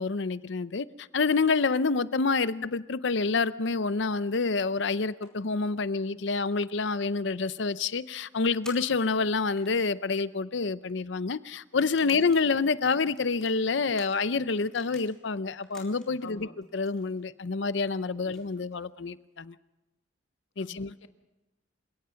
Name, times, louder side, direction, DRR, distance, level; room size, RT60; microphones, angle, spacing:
voice 1, 0.0-16.5 16.7-19.5 20.6-20.9, left 4 dB, 65° left, 0.6 m, -28 dB
sound 1, 5.2-6.0 6.5-6.6 6.8-6.9 7.6-7.8 8.6-10.0 10.7-10.8 11.6-12.5 12.8-15.1 15.5-16.3 16.6-19.0, left 1 dB, 5° left, 4.2 m, -52 dB
voice 2, 16.2-16.5 18.2-18.3 20.6-21.1, left 2 dB, 85° left, 1.6 m, -46 dB
28.0 x 17.0 x 5.8 m
head